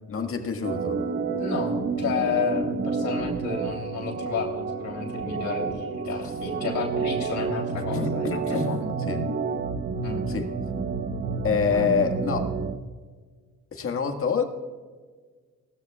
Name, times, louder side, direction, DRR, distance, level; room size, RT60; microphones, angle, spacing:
voice 1, 0.1-1.0 7.8-8.8 9.1-9.2 10.3-10.5 11.4-12.5 13.7-14.4, left 6 dB, 45° left, 4 dB, 1.8 m, -27 dB
Organ, 0.6-12.8, right 4 dB, 40° right, 0.9 m, -29 dB
voice 2, 1.4-8.9 10.0-10.3 11.7-11.9, left 6 dB, 70° left, -2 dB, 3.3 m, -31 dB
18.5 x 14.0 x 2.4 m, 1.5 s
cardioid pair, 90°, 30 cm